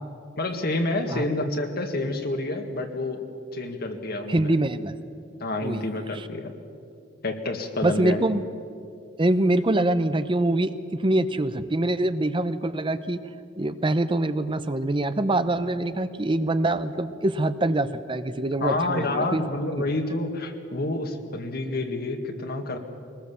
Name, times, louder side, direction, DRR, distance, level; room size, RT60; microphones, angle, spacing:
voice 1, 0.4-3.2 3.5-4.6 5.4-6.5 7.2-8.2 18.6-22.8, left 2 dB, 55° left, 5 dB, 1.9 m, -28 dB
voice 2, 4.3-4.9 5.6-5.8 6.1-6.3 7.8-8.4 9.2-13.2 13.6-19.4, right 1 dB, 25° right, 12 dB, 0.7 m, -24 dB
22.5 x 20.0 x 7.0 m, 2.5 s
head